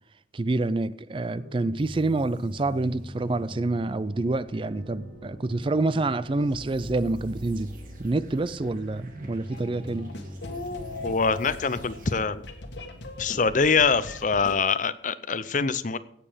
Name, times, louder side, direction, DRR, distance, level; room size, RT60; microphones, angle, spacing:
voice 1, 0.3-7.7 8.0-10.1, right 2 dB, 30° right, 0.4 m, -27 dB
sound 1, 1.4-11.2, equal, 90° right, 6.4 m, -47 dB
sound 2, 1.8-12.2, equal, 50° right, 2.1 m, -44 dB
sound 3, 9.5-14.5, left 2 dB, 85° left, 1.9 m, -39 dB
voice 2, 11.0-12.4 13.2-16.0, left 5 dB, 45° left, 0.6 m, -24 dB
16.5 x 7.5 x 5.1 m
head